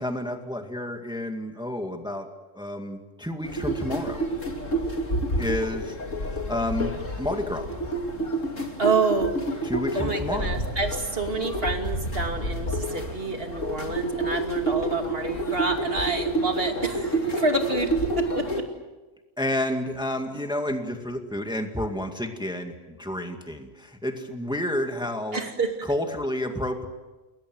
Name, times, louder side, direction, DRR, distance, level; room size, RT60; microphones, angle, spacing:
voice 1, 0.0-2.3 2.5-4.3 5.4-7.7 9.6-10.6 19.4-25.5 25.8-26.9, left 1 dB, 5° right, 4 dB, 2.1 m, -30 dB
sound 1, 3.4-18.6, right 2 dB, 75° left, 3.2 m, -29 dB
voice 2, 8.8-9.3 9.9-17.9 18.3-18.4 25.3-25.7, right 3 dB, 50° right, 4 dB, 2.9 m, -28 dB
29.0 x 22.0 x 7.8 m, 1.1 s
omnidirectional pair, 1.3 m